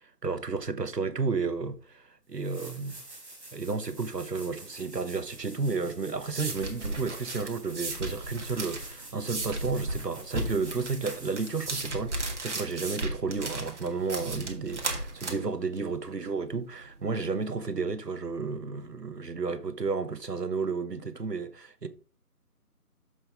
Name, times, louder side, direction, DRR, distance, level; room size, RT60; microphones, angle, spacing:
voice 1, 0.2-3.0 3.5-21.9, right 4 dB, 85° right, 1.2 m, -32 dB
sound 1, 1.8-1.9 2.3-12.1 14.9-15.0, right 2 dB, 5° right, 2.9 m, -48 dB
sound 2, 5.9-17.2, right 2 dB, 45° right, 1.7 m, -36 dB
7.1 x 6.7 x 3.4 m
figure-of-eight pair, 160°, 47 cm